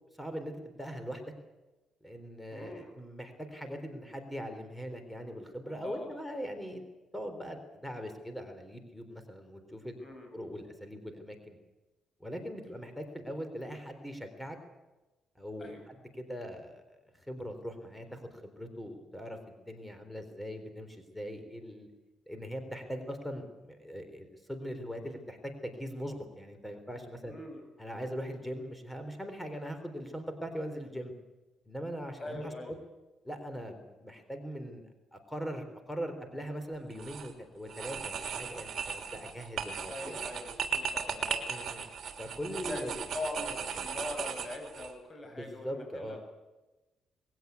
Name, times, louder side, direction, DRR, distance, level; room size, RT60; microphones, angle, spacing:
voice 1, 0.2-1.3 2.0-6.8 7.1-10.0 10.3-11.6 12.2-14.6 15.4-21.9 22.3-27.3 27.8-31.1 31.7-32.8 33.2-34.9 35.1-40.2 41.5-41.9 42.2-43.0 43.7-43.9 45.2-46.2, equal, 5° left, 7 dB, 3.7 m, -41 dB
voice 2, 2.5-2.9 5.7-6.2 10.0-10.3 15.6-15.9 27.3-27.6 32.2-32.8 39.9-41.5 42.5-46.2, left 2 dB, 30° left, 4 dB, 7.2 m, -42 dB
sound 1, 36.9-37.3 37.7-44.9, right 6 dB, 55° right, 3.2 m, -37 dB
20.5 x 16.5 x 9.6 m, 1.1 s
cardioid pair, 90°, 0 cm